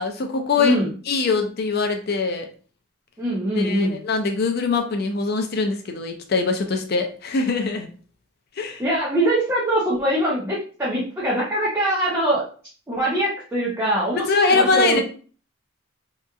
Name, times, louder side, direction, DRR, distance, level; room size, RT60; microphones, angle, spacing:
voice 1, 0.0-0.8 1.1-2.5 3.6-7.9 8.6-8.8 14.3-15.0, left 4 dB, 45° left, 5 dB, 0.4 m, -22 dB
voice 2, 0.6-0.9 3.2-3.9 8.8-12.4 12.9-15.0, right 1 dB, 10° right, -6 dB, 0.5 m, -22 dB
2.8 x 2.4 x 2.3 m, 0.40 s
head